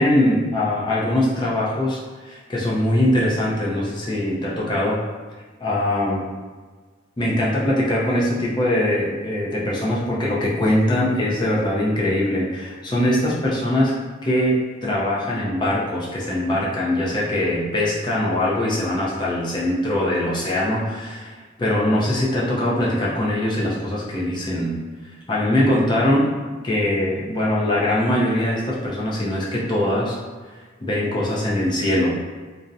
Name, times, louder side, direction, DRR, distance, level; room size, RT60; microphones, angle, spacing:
voice 1, 0.0-5.0 5.6-6.3 7.2-13.9 14.2-24.7 25.3-26.3 26.6-30.2 30.8-32.2, left 1 dB, 20° left, -5 dB, 0.4 m, -22 dB
2.6 x 2.0 x 2.4 m, 1.4 s
head